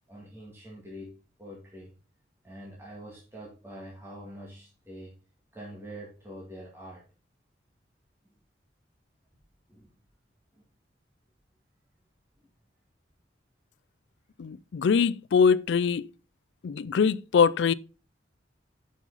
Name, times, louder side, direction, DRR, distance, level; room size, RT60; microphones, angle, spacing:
voice 1, 0.1-1.9 2.4-5.1 5.5-7.0 9.7-9.9 10.5-10.6, equal, 15° right, 1.8 m, -45 dB
voice 2, 14.4-16.1 16.6-17.7, left 6 dB, 70° left, 0.4 m, -23 dB
7.3 x 5.6 x 3.9 m
head